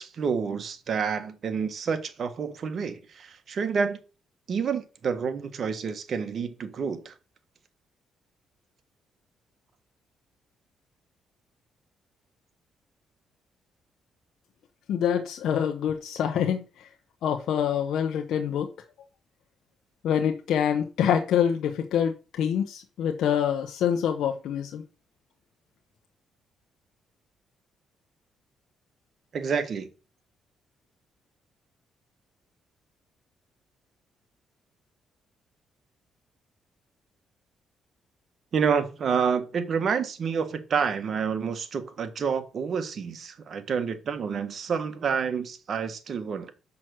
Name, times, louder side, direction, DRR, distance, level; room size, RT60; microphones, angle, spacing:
voice 1, 0.0-4.0 4.5-7.1 29.3-29.9 38.5-46.5, right 6 dB, 55° right, 1.4 m, -28 dB
voice 2, 14.9-16.6 17.2-18.7 20.0-24.8, left 8 dB, 75° left, 0.9 m, -26 dB
6.1 x 5.9 x 6.3 m
cardioid pair, 90°, 0 cm